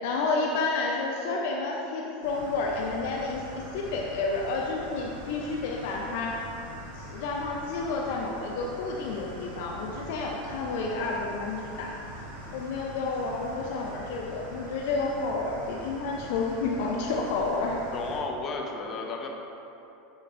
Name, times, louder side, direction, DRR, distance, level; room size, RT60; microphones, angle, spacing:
voice 1, 0.0-3.4 3.7-6.4 6.9-11.9 12.5-17.8, left 3 dB, 65° left, -1 dB, 0.6 m, -30 dB
sound 1, 2.2-18.2, equal, 85° right, 1.3 m, -43 dB
voice 2, 17.9-19.3, left 3 dB, 40° left, 1 dB, 1.0 m, -33 dB
9.8 x 5.2 x 2.6 m, 2.9 s
hypercardioid pair, 90°, 0 cm